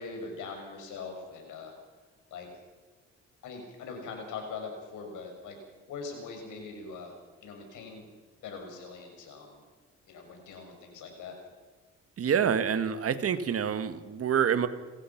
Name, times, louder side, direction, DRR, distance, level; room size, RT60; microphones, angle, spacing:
voice 1, 0.0-1.7 2.3-2.5 3.4-5.6 5.9-7.1 7.4-8.0 8.4-9.6 10.1-11.3, left 4 dB, 85° left, 3 dB, 6.2 m, -42 dB
voice 2, 12.2-14.7, right 8 dB, 50° right, 11 dB, 1.5 m, -27 dB
29.5 x 15.0 x 5.9 m, 1.3 s
cardioid pair, 90°, 30 cm